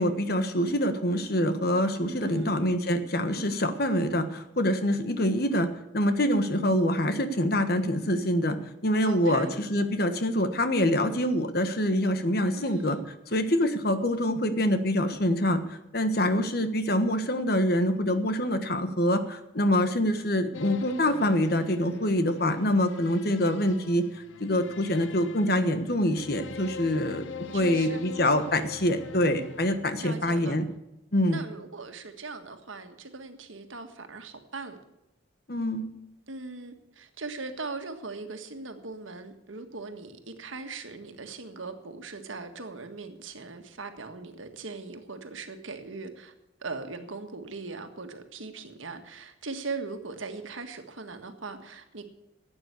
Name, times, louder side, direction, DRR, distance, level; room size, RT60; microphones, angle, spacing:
voice 1, 0.0-8.6 8.8-13.0 13.3-27.3 27.5-30.7 31.1-31.4 35.5-35.9, left 1 dB, 50° left, 9 dB, 1.4 m, -25 dB
voice 2, 2.3-2.8 9.1-9.5 12.6-13.1 27.5-28.0 30.0-30.6 31.3-34.8 36.3-46.3 46.6-52.1, right 3 dB, 90° right, 6 dB, 1.7 m, -40 dB
sound 1, 20.5-30.4, left 6 dB, 75° left, 0.7 m, -42 dB
12.0 x 8.8 x 8.3 m, 0.89 s
head